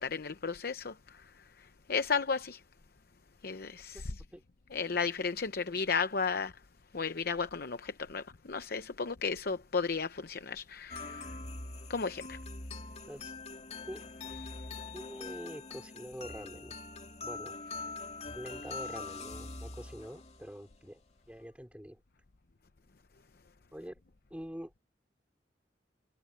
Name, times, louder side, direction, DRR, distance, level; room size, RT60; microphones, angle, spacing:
voice 1, 0.0-2.6 3.4-4.2 4.7-6.6 6.9-11.4 11.9-12.4 14.2-14.6 17.7-17.9, left 5 dB, 60° left, 0.8 m, -34 dB
sound 1, 10.9-20.6, left 3 dB, 40° left, 2.3 m, -43 dB
voice 2, 14.8-16.8 17.2-17.6 18.3-21.0 21.3-22.0 23.7-24.0 24.3-24.7, equal, 10° right, 3.6 m, -45 dB
head